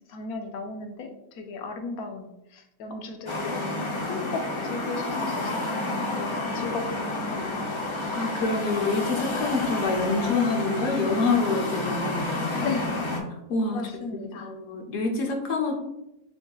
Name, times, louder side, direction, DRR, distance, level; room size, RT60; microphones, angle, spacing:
voice 1, 0.1-1.1 1.4-3.8 4.1-5.7 6.2-6.3 6.5-7.8 12.6-12.9 13.7-14.5, left 4 dB, 90° left, 5 dB, 1.1 m, -35 dB
sound 1, 3.3-13.2, left 2 dB, 30° left, 0.5 m, -30 dB
voice 2, 8.1-12.7 13.5-13.9 14.3-15.8, left 3 dB, 65° left, 1 dB, 1.0 m, -27 dB
7.4 x 2.7 x 2.3 m, 0.89 s
omnidirectional pair, 1.5 m